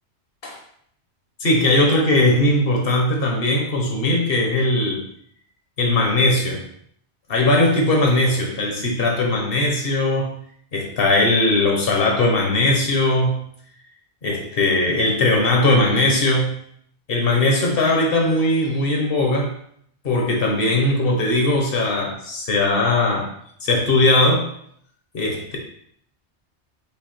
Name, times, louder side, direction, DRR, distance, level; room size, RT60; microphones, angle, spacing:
voice 1, 1.4-5.0 5.8-6.6 7.3-10.4 10.7-13.4 14.2-16.5 17.1-19.5 20.0-23.3 23.6-24.5 25.1-25.6, left 2 dB, 55° left, 0 dB, 1.2 m, -19 dB
5.5 x 2.2 x 4.3 m, 0.65 s
omnidirectional pair, 1.2 m